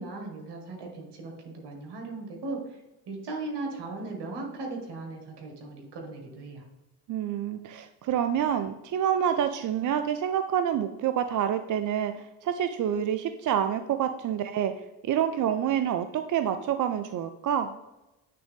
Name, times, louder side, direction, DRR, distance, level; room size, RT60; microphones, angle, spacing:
voice 1, 0.0-2.8 3.1-6.7, right 3 dB, 65° right, 1 dB, 1.8 m, -37 dB
voice 2, 7.1-14.7 15.0-17.7, right 9 dB, 45° right, 10 dB, 0.5 m, -27 dB
8.7 x 3.6 x 3.5 m, 0.97 s
supercardioid pair, 60°, 43 cm